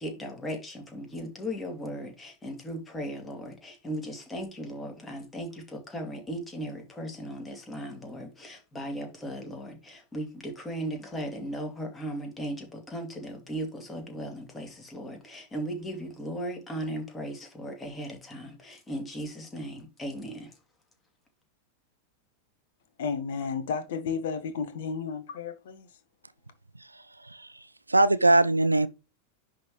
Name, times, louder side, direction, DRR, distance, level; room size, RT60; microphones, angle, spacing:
voice 1, 0.0-20.6, equal, 15° left, 2.4 m, -37 dB
voice 2, 23.0-25.9, left 5 dB, 55° left, 1.2 m, -32 dB
voice 3, 27.9-28.9, right 2 dB, 85° right, 0.4 m, -21 dB
10.5 x 3.8 x 3.2 m
figure-of-eight pair, 90°, 0 cm